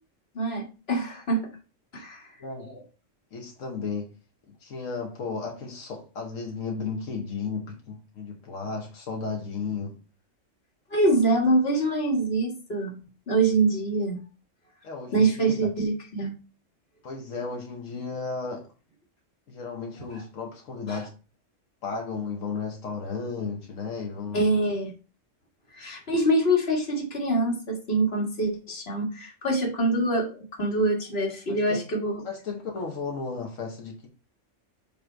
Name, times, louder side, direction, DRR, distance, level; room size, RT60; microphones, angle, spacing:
voice 1, 0.3-1.5 1.9-2.3 2.6-2.8 10.9-13.0 13.3-14.2 15.1-16.3 20.9-21.0 24.3-24.9 25.7-32.2, right 2 dB, 55° left, 1.9 m, -25 dB
voice 2, 2.4-2.7 3.3-4.1 4.5-10.0 14.8-15.7 17.0-18.7 19.5-21.1 21.8-24.4 31.5-31.8 32.2-34.1, left 4 dB, 85° left, 1.4 m, -34 dB
7.3 x 3.3 x 4.4 m
omnidirectional pair, 1.3 m